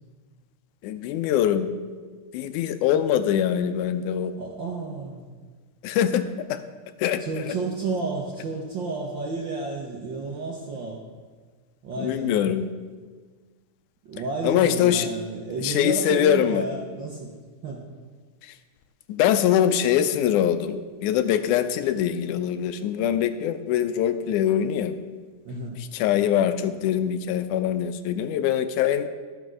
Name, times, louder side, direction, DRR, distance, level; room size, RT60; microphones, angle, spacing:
voice 1, 0.8-1.7 2.3-4.3 5.8-6.6 7.0-7.2 12.0-12.7 14.4-15.1 15.6-16.6 18.4-18.5 19.1-25.0 25.9-29.1, left 10 dB, 85° left, 10 dB, 2.1 m, -23 dB
voice 2, 4.4-5.3 7.2-11.0 11.8-12.4 14.0-17.3 17.6-17.8 25.4-25.8, right 3 dB, 80° right, -2 dB, 1.0 m, -31 dB
12.5 x 5.2 x 6.1 m, 1.5 s
omnidirectional pair, 3.5 m